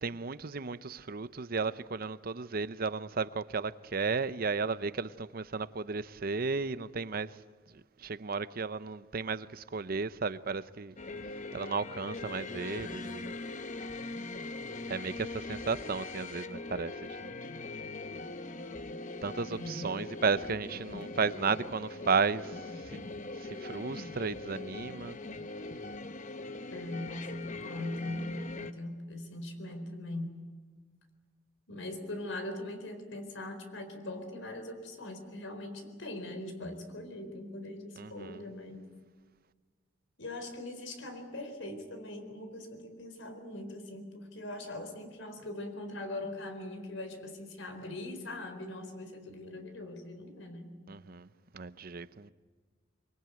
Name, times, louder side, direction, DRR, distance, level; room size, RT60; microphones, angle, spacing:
voice 1, 0.0-7.3 8.0-10.9 11.5-13.3 14.9-16.9 17.2-17.3 19.2-22.6 22.9-23.1 23.4-25.2 38.0-38.4 50.9-51.3 51.5-52.3, right 4 dB, 50° right, 0.7 m, -34 dB
sound 1, 11.0-28.7, left 2 dB, 40° left, 1.0 m, -41 dB
voice 2, 19.5-19.9 26.7-30.4 31.7-38.9 40.2-50.7, left 1 dB, 80° left, 4.3 m, -41 dB
24.0 x 23.5 x 9.2 m
head